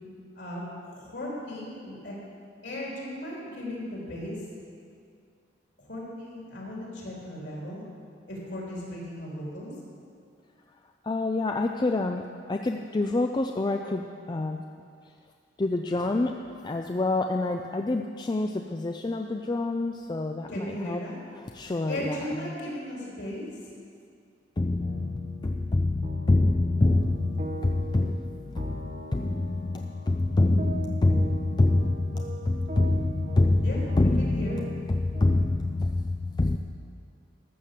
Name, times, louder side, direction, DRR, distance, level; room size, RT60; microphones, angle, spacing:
voice 1, 0.4-2.2 2.6-4.4 5.8-7.8 8.3-9.7 20.5-21.1 21.9-23.5 33.6-34.6, left 1 dB, 65° left, 3.6 m, -36 dB
voice 2, 11.0-14.6 15.6-21.0 21.5-22.2 24.6-28.7 29.1-36.6, left 2 dB, 25° left, 0.4 m, -26 dB
voice 3, 24.8-25.7 26.0-35.7, right 3 dB, 40° right, 0.9 m, -42 dB
13.0 x 7.3 x 6.6 m
head